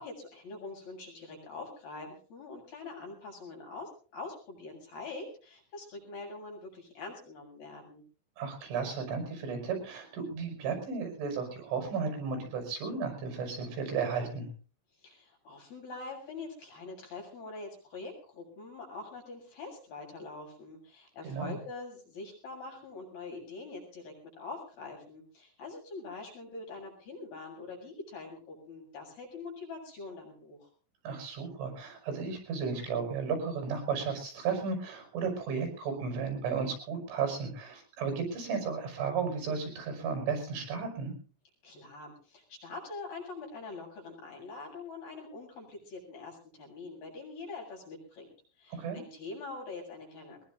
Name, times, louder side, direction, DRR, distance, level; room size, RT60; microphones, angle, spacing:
voice 1, 0.0-8.0 15.0-30.7 41.6-48.3 48.6-50.5, left 3 dB, 50° left, 0 dB, 9.4 m, -44 dB
voice 2, 8.4-14.5 21.2-21.6 31.0-41.1 48.7-49.0, right 5 dB, 70° right, 5 dB, 8.1 m, -34 dB
23.0 x 20.5 x 2.6 m, 0.39 s
omnidirectional pair, 5.8 m